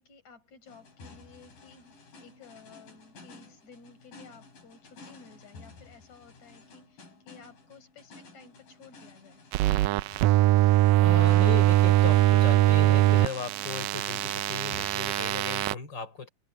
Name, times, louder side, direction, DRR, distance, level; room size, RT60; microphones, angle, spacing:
voice 1, 0.0-9.4, left 4 dB, 55° left, 6.6 m, -54 dB
sound 1, 0.7-15.8, left 3 dB, 90° left, 7.7 m, -53 dB
sound 2, 9.5-15.7, right 15 dB, 90° right, 1.6 m, -22 dB
voice 2, 10.6-16.3, left 5 dB, 35° left, 4.5 m, -37 dB
omnidirectional pair, 3.8 m